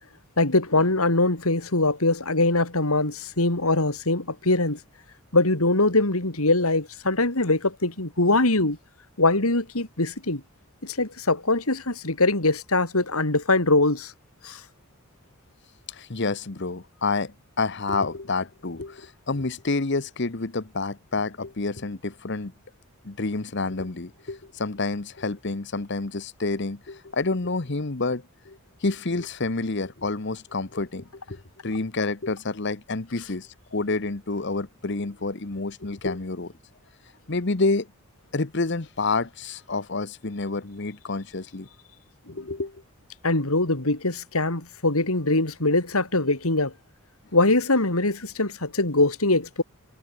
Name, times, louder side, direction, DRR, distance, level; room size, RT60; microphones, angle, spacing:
voice 1, 0.4-4.8 5.3-8.8 9.2-10.4 10.8-14.1 14.4-14.6 42.3-42.4 43.2-46.7 47.3-49.6, left 2 dB, 85° left, 4.0 m, -22 dB
voice 2, 15.9-22.5 23.0-36.5 37.3-37.9 38.3-41.7 42.3-42.8, left 3 dB, 55° left, 1.1 m, -29 dB
head